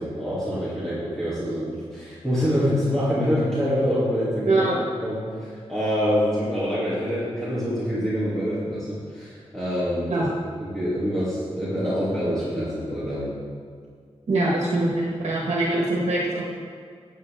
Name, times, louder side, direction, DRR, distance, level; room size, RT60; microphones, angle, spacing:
voice 1, 0.0-4.7 5.0-10.3 10.6-13.3, equal, 5° left, -11 dB, 2.7 m, -26 dB
voice 2, 4.4-4.8 10.1-10.3 14.3-16.4, right 2 dB, 75° right, -4 dB, 1.5 m, -23 dB
12.0 x 8.2 x 3.6 m, 2.1 s
wide cardioid pair, 95°, 11 cm